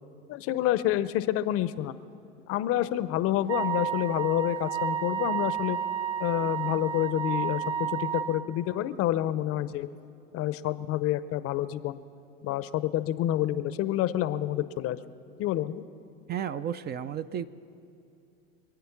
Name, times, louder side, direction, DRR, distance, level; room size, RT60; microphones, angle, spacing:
voice 1, 0.3-1.9 2.5-5.8 6.2-9.9 10.3-12.0 12.4-15.0 15.4-15.8, left 13 dB, 45° left, 15 dB, 0.7 m, -28 dB
Wind instrument woodwind instrument, 3.5-8.3, right 9 dB, 70° right, 1.2 m, -31 dB
voice 2, 16.3-17.5, right 9 dB, 30° right, 13 dB, 0.5 m, -33 dB
26.5 x 9.2 x 5.9 m, 2.6 s
hypercardioid pair, 100°, 33 cm